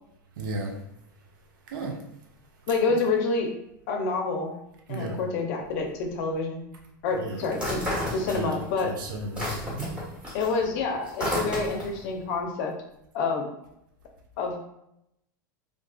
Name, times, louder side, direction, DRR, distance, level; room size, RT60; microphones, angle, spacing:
voice 1, 0.4-0.7 1.7-2.0 4.9-5.2 7.1-7.4 8.3-8.6 8.8-9.9, right 2 dB, 75° right, 1 dB, 0.5 m, -34 dB
voice 2, 2.7-3.5 3.9-4.5 4.9-6.6 7.0-7.8 8.1-8.9 10.3-12.7 13.1-13.5 14.4-14.6, left 4 dB, 60° left, 3 dB, 0.5 m, -27 dB
sound 1, 7.5-8.8 9.1-12.0, equal, 10° right, 1.2 m, -31 dB
2.4 x 2.3 x 2.2 m, 0.80 s
hypercardioid pair, 95°, 11 cm